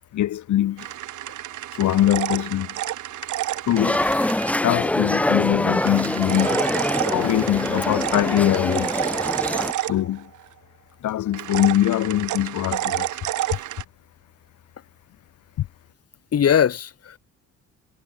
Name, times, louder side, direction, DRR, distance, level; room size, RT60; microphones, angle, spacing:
voice 1, 0.1-0.9 1.7-2.7 3.7-4.1 4.6-6.6 7.0-9.2 9.8-10.3 11.0-13.2 15.6-15.7, left 13 dB, 75° left, 1.7 m, -22 dB
sound 1, 0.8-4.6 5.8-10.4 11.3-13.8, right 14 dB, 75° right, 1.4 m, -30 dB
sound 2, 3.8-9.7, left 1 dB, 5° left, 0.5 m, -24 dB
voice 2, 7.0-7.7 16.3-17.2, left 8 dB, 50° left, 2.6 m, -22 dB
cardioid pair, 90°, 30 cm